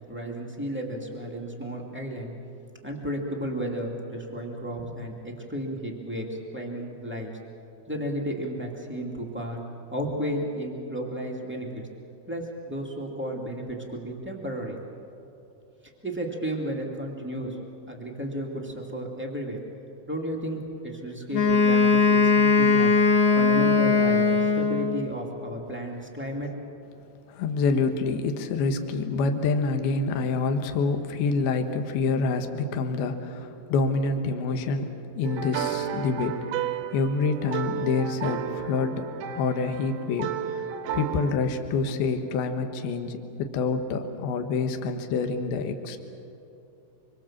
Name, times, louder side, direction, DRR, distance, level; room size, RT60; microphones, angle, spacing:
voice 1, 0.1-2.3 2.8-7.3 7.9-9.6 9.9-11.8 12.2-14.8 16.0-17.6 17.9-19.6 20.1-22.9 23.3-26.5, right 1 dB, 10° right, -1 dB, 0.5 m, -33 dB
Wind instrument woodwind instrument, 21.3-25.0, left 4 dB, 45° left, 3.1 m, -20 dB
voice 2, 27.3-36.7 36.9-39.1 39.4-40.7 40.9-46.0, left 4 dB, 70° left, 6 dB, 3.0 m, -27 dB
sound 1, 35.2-41.3, right 9 dB, 85° right, 3.0 m, -33 dB
26.0 x 24.0 x 7.3 m, 2.7 s
omnidirectional pair, 5.0 m